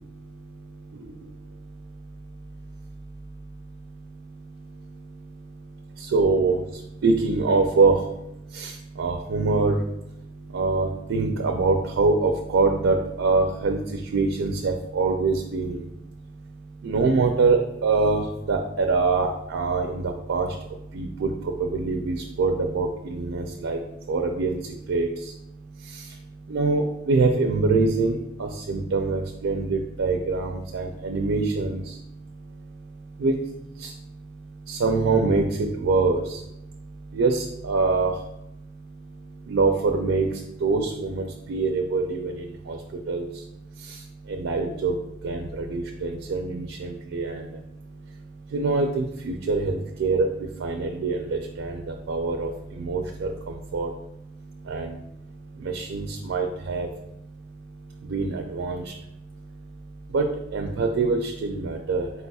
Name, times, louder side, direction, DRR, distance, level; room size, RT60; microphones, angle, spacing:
voice 1, 6.1-6.6 7.0-8.0 8.6-8.7 9.0-9.8 10.5-13.8 14.1-15.8 16.8-18.2 18.5-20.5 20.9-21.3 21.6-23.8 24.1-24.5 24.9-25.1 26.5-31.8 33.2-33.3 34.7-36.2 37.1-38.1 39.5-40.3 40.6-42.8 43.1-43.3 44.4-44.9 45.2-47.4 48.5-50.3 50.6-51.8 52.1-52.5 52.8-53.3 53.7-53.9 54.7-55.0 55.7-56.9 58.1-58.8 60.1-60.2 60.5-62.1, right 3 dB, 70° right, 3 dB, 0.4 m, -24 dB
4.1 x 4.0 x 2.3 m, 0.84 s
head